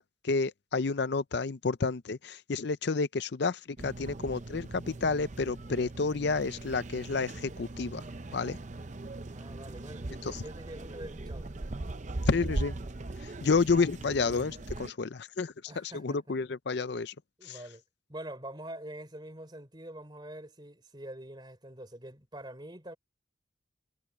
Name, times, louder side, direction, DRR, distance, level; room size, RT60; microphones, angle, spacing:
voice 1, 0.0-8.0 8.3-8.6 10.2-10.4 12.3-12.8 13.2-17.1 17.4-17.6, left 4 dB, 55° left, 0.5 m, -30 dB
sound 1, 3.8-14.9, right 2 dB, 35° right, 0.6 m, -40 dB
voice 2, 9.3-11.5 15.7-16.2 17.4-17.8 18.1-23.0, right 1 dB, 20° right, 3.5 m, -45 dB
head